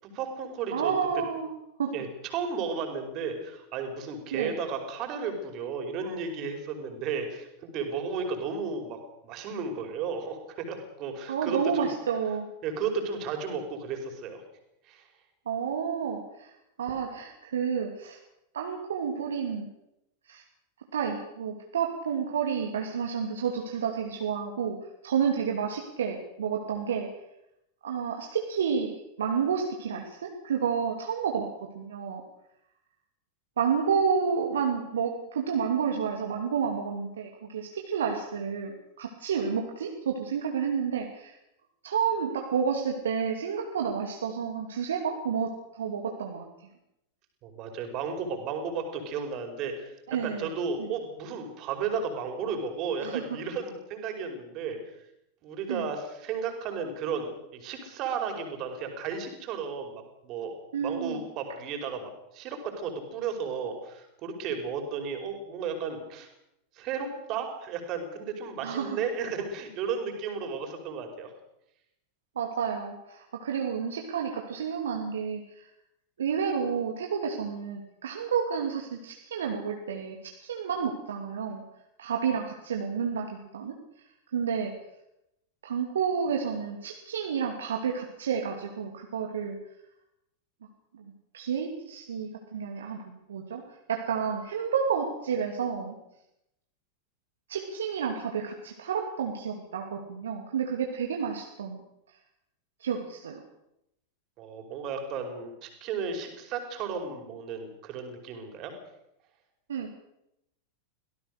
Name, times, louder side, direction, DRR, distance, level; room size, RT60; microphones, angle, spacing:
voice 1, 0.0-0.9 1.9-11.9 12.6-14.4 14.8-15.0 47.4-54.9 55.4-60.6 60.8-66.3 66.7-71.3 104.4-108.7, right 5 dB, 40° right, 5 dB, 5.2 m, -34 dB
voice 2, 0.7-1.9 4.3-4.5 11.3-12.5 15.5-16.5 16.8-18.2 18.5-19.7 20.3-20.4 20.9-24.8 25.0-27.1 27.8-28.9 29.2-32.2 33.6-41.4 41.8-46.5 50.1-50.5 50.8-50.9 53.0-53.2 55.7-55.9 60.7-61.2 68.6-69.0 72.4-75.7 76.2-81.6 82.0-83.8 84.3-84.7 85.6-89.6 90.9-96.0 97.5-101.8 102.8-103.4 109.7-109.9, right 7 dB, 65° right, 2 dB, 2.6 m, -30 dB
24.5 x 17.5 x 6.7 m, 0.83 s
figure-of-eight pair, 90°, 0 cm